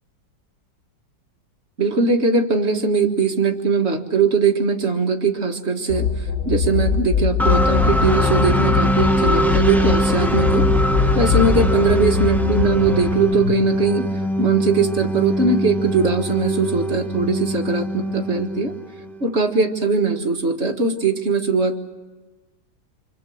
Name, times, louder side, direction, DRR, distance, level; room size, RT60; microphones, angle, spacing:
voice 1, 1.8-10.7 11.1-14.1 14.4-18.7 19.2-21.8, right 4 dB, 35° right, 4 dB, 2.0 m, -20 dB
sound 1, 5.9-13.5, left 6 dB, 85° left, 7.0 m, -22 dB
sound 2, 7.4-19.2, equal, ahead, 1.0 m, -22 dB
28.0 x 25.5 x 7.9 m, 1.2 s
omnidirectional pair, 2.1 m